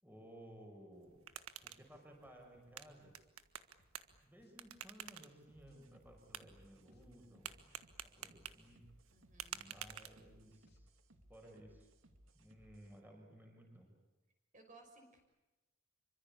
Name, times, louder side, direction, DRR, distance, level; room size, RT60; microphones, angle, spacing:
voice 1, 0.0-1.3 1.6-3.1 4.2-7.7 8.2-8.9 9.4-10.9 11.3-11.9 12.3-13.9, right 1 dB, 10° right, 1 dB, 5.8 m, -58 dB
sound 1, 0.9-10.6, right 9 dB, 85° right, 1.6 m, -52 dB
sound 2, 1.3-2.7 3.2-3.3 3.8-5.2 5.7-5.8 6.1-7.7 8.2-8.3 8.8-10.2 10.7-10.8, left 1 dB, 45° left, 2.6 m, -75 dB
sound 3, 5.5-13.0, right 1 dB, 70° right, 2.4 m, -66 dB
voice 2, 9.1-9.7 14.5-15.2, right 2 dB, 35° right, 3 dB, 5.9 m, -61 dB
27.0 x 25.0 x 8.5 m, 1.1 s
head